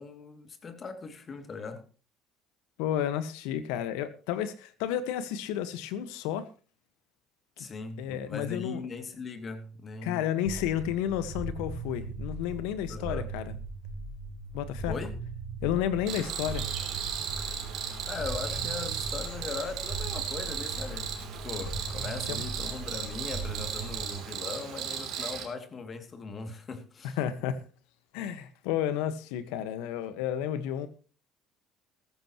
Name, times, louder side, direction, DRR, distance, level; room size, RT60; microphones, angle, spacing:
voice 1, 0.0-1.8 7.6-10.2 12.9-13.3 14.9-15.2 16.2-16.3 18.0-21.1 21.4-27.2, left 4 dB, 40° left, 2.6 m, -39 dB
voice 2, 2.8-6.5 7.6-7.7 8.0-8.8 10.0-13.6 14.5-14.9 15.6-16.6 22.3-22.4 27.2-27.6 28.1-30.9, left 10 dB, 80° left, 1.5 m, -31 dB
sound 1, 10.4-24.2, right 3 dB, 15° right, 6.4 m, -39 dB
Cricket, 16.1-25.5, right 8 dB, 70° right, 3.2 m, -36 dB
14.5 x 14.5 x 3.1 m
supercardioid pair, 75°, 0 cm